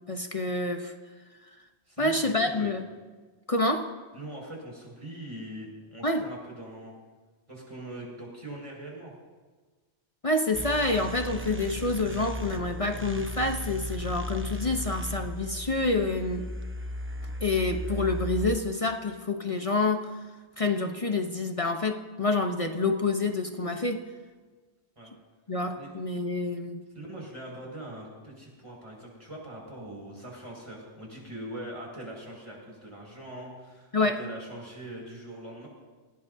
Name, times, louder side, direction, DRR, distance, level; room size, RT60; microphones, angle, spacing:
voice 1, 0.1-0.9 2.0-2.8 3.5-3.9 6.0-6.3 10.2-16.5 17.4-20.2 20.6-24.1 25.5-26.8 33.9-34.2, left 2 dB, 35° left, 5 dB, 1.0 m, -27 dB
voice 2, 1.9-2.7 4.1-6.9 7.5-9.1 25.0-25.1 25.7-25.9 26.9-35.7, right 1 dB, 30° right, -3 dB, 5.9 m, -42 dB
sound 1, 10.5-18.6, right 1 dB, 15° right, 0.8 m, -36 dB
29.0 x 17.5 x 2.8 m, 1.4 s
omnidirectional pair, 1.1 m